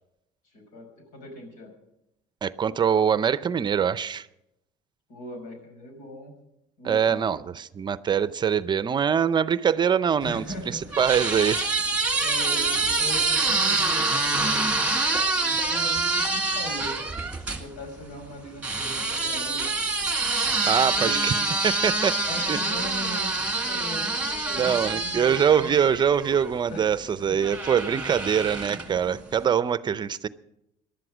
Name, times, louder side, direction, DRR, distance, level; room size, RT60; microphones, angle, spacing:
voice 1, 0.4-1.7 5.1-6.3 6.8-7.3 10.2-11.1 12.2-15.0 15.3-16.9 17.4-19.7 20.5-21.5 22.2-25.7 26.7-26.9 27.2-27.3 28.7-29.1, left 1 dB, 80° left, 5 dB, 5.5 m, -39 dB
voice 2, 2.4-4.3 6.8-10.4 11.0-11.7 20.7-21.3 21.6-22.1 22.5-22.6 24.6-30.3, right 7 dB, 35° right, 16 dB, 0.6 m, -23 dB
sound 1, 10.3-17.6 18.6-26.5 27.4-29.0, right 3 dB, 10° right, 1.9 m, -26 dB
19.0 x 11.5 x 6.2 m, 0.85 s
cardioid pair, 105°, 14 cm